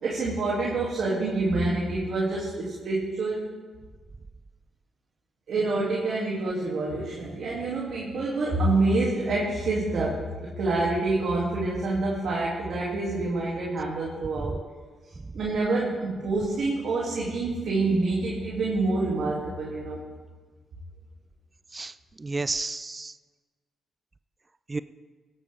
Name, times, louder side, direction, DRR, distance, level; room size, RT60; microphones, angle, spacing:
voice 1, 0.0-3.4 5.5-10.3 10.6-14.6 15.3-20.0, right 2 dB, 70° right, -5 dB, 2.4 m, -27 dB
voice 2, 21.7-23.1 24.7-24.8, right 3 dB, 30° right, 14 dB, 0.4 m, -32 dB
17.5 x 9.9 x 3.4 m, 1.4 s
supercardioid pair, 60°, 0 cm